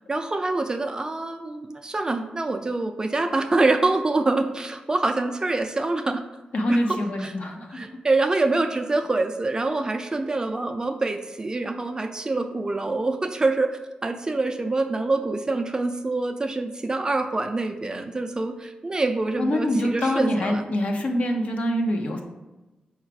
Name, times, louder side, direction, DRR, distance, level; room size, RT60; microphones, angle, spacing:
voice 1, 0.1-6.2 6.7-7.3 7.7-13.7 14.0-20.7, right 2 dB, 25° right, 6 dB, 0.4 m, -25 dB
voice 2, 6.5-7.9 19.4-22.2, equal, 55° left, 2 dB, 0.7 m, -25 dB
4.9 x 2.4 x 4.6 m, 1.1 s
cardioid pair, 85°, 3 cm